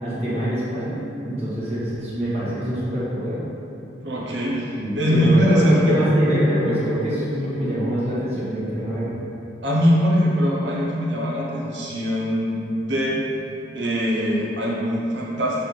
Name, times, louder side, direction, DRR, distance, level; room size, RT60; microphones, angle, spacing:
voice 1, 0.0-3.4 4.8-9.2, equal, 35° right, -10 dB, 1.4 m, -24 dB
voice 2, 4.0-6.0 9.6-13.2 13.7-15.6, equal, 65° right, -4 dB, 1.0 m, -21 dB
6.8 x 4.1 x 4.1 m, 2.8 s
head